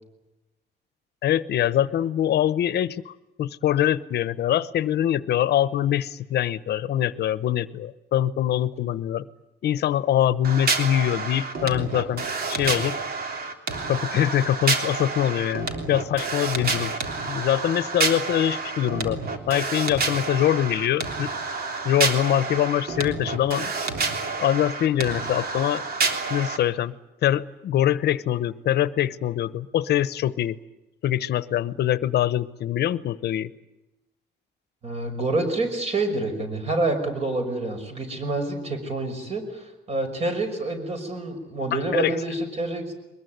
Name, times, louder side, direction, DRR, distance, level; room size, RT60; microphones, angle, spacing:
voice 1, 1.2-3.1 3.4-9.2 9.6-12.2 12.5-13.0 13.9-16.9 17.3-19.2 19.5-21.3 21.8-23.7 24.4-25.8 26.3-26.9 27.2-30.6 31.0-33.5 41.7-42.1, left 11 dB, 70° left, 16 dB, 0.9 m, -23 dB
sound 1, 10.4-26.6, right 4 dB, 60° right, 3.4 m, -29 dB
voice 2, 34.8-42.9, right 2 dB, 35° right, 6 dB, 5.9 m, -27 dB
22.5 x 21.0 x 9.4 m, 1.0 s
cardioid pair, 160°, 18 cm